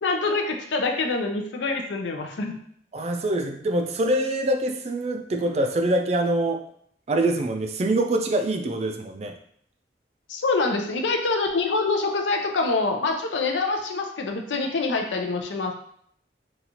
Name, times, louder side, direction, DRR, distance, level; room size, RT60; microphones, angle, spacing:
voice 1, 0.0-2.6 10.3-15.7, left 3 dB, 90° left, 3 dB, 0.5 m, -25 dB
voice 2, 2.9-6.6 7.1-9.4, right 1 dB, 35° right, 5 dB, 0.3 m, -24 dB
3.9 x 2.4 x 2.9 m, 0.66 s
head